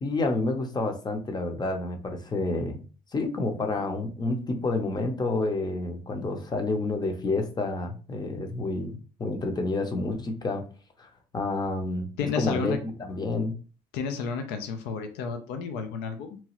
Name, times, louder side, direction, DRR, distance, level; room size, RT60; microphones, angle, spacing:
voice 1, 0.0-2.8 3.1-10.6 11.0-11.1 11.3-13.6, left 2 dB, 25° left, 5 dB, 0.6 m, -29 dB
voice 2, 12.2-12.8 13.9-16.4, left 5 dB, 90° left, 6 dB, 0.5 m, -31 dB
2.9 x 2.3 x 2.9 m, 0.37 s
cardioid pair, 110°, 17 cm